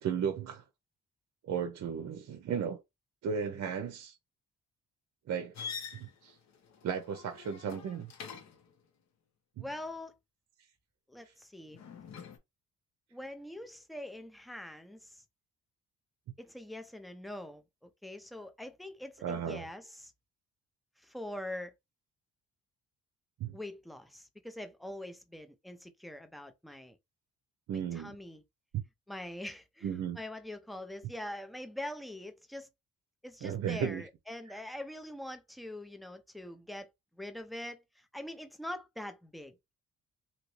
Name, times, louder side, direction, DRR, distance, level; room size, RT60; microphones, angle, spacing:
voice 1, 0.0-0.6 1.4-2.8 3.2-4.2 5.3-5.5 5.9-6.3 6.8-8.1 9.6-9.7 19.2-19.6 23.4-23.5 27.7-28.1 29.8-30.2 33.4-34.0, right 7 dB, 60° right, 0.6 m, -35 dB
sound 1, 5.5-8.7 11.7-12.4, left 6 dB, 60° left, 1.0 m, -45 dB
voice 2, 9.6-10.2 11.1-11.8 13.1-15.2 16.4-20.1 21.0-21.7 23.5-27.0 27.7-28.4 29.1-32.7 33.2-39.8, left 1 dB, ahead, 0.5 m, -44 dB
2.9 x 2.6 x 3.1 m
cardioid pair, 90°, 30 cm